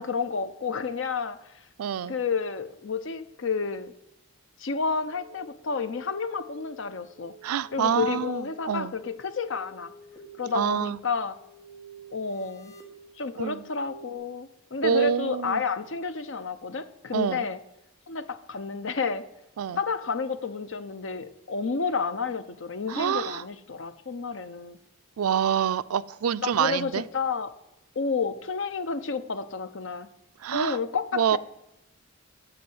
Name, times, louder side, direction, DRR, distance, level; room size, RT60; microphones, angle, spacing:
voice 1, 0.0-1.4 2.1-3.9 4.6-7.3 7.7-9.9 10.4-11.4 12.1-12.7 13.2-17.6 18.1-19.2 19.8-24.8 26.4-27.5 28.0-30.1 30.5-31.4, left 5 dB, 60° left, 11 dB, 0.6 m, -30 dB
voice 2, 1.8-2.1 7.4-8.9 10.5-11.0 13.4-13.6 14.8-15.6 17.1-17.5 19.6-19.8 22.9-23.4 25.2-27.0 30.4-30.8 31.1-31.4, right 8 dB, 90° right, 17 dB, 0.4 m, -26 dB
sound 1, 5.0-14.2, equal, 15° left, 1.4 m, -50 dB
8.5 x 5.5 x 7.8 m, 0.88 s
head